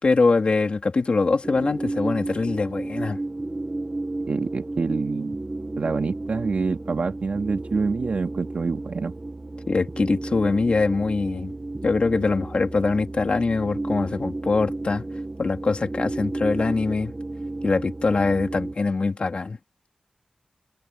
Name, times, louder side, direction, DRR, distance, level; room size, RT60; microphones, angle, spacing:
voice 1, 0.0-3.2 9.7-11.5 11.8-15.1 15.4-17.1 17.6-19.6, left 3 dB, 50° left, 3.4 m, -23 dB
sound 1, 1.4-18.7, right 2 dB, 25° right, 1.7 m, -32 dB
voice 2, 4.3-5.4 5.8-9.1, right 4 dB, 65° right, 3.1 m, -26 dB
wide cardioid pair, 100°, 2 cm